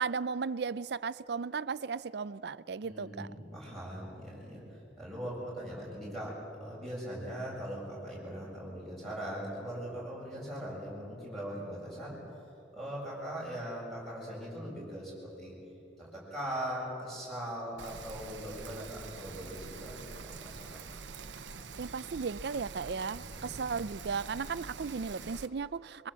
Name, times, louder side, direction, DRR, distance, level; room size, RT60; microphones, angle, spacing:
voice 1, 0.0-3.3 21.8-26.1, right 5 dB, 65° right, 17 dB, 0.5 m, -35 dB
voice 2, 2.8-12.2 12.7-15.5 16.0-20.8 23.1-23.6, equal, ahead, -6 dB, 7.5 m, -40 dB
Rain, 17.8-25.5, right 4 dB, 85° right, 0.9 m, -45 dB
23.0 x 23.0 x 7.5 m, 2.9 s
head